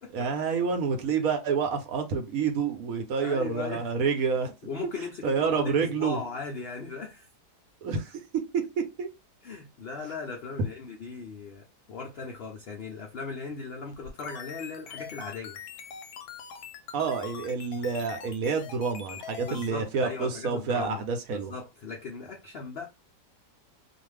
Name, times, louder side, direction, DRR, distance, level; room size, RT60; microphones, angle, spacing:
voice 1, 0.1-4.5 5.2-6.2 7.8-8.2 8.5-9.1 16.9-21.5, right 5 dB, 65° right, 0.9 m, -28 dB
voice 2, 3.2-4.1 4.7-7.3 9.4-15.6 19.4-21.0 21.3-22.9, left 4 dB, 90° left, 0.5 m, -38 dB
sound 1, 13.9-19.7, left 7 dB, 70° left, 1.0 m, -43 dB
2.5 x 2.4 x 3.2 m
omnidirectional pair, 1.8 m